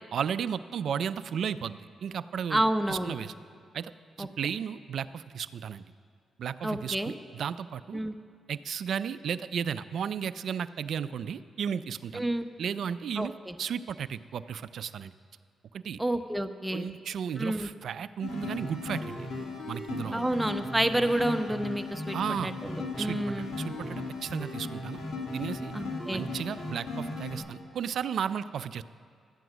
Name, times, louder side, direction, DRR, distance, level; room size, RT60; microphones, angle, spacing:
voice 1, 0.1-2.6 2.9-3.3 3.7-3.9 4.2-5.8 6.4-8.0 8.5-12.3 12.6-13.3 13.6-15.1 15.7-16.0 16.7-19.3 19.7-20.2 22.1-22.5 23.0-25.0 25.3-25.7 26.1-28.8, right 8 dB, 70° right, 14 dB, 0.4 m, -34 dB
voice 2, 2.5-3.2 4.2-4.3 6.6-7.1 7.9-8.2 12.1-12.5 13.2-13.5 16.0-16.9 17.4-17.7 20.1-22.2 22.4-23.6 25.7-26.2, right 1 dB, 10° right, 8 dB, 0.9 m, -29 dB
sound 1, 18.2-27.4, left 2 dB, 65° left, 2.2 m, -37 dB
13.0 x 9.2 x 6.1 m, 2.2 s
hypercardioid pair, 40°, 0 cm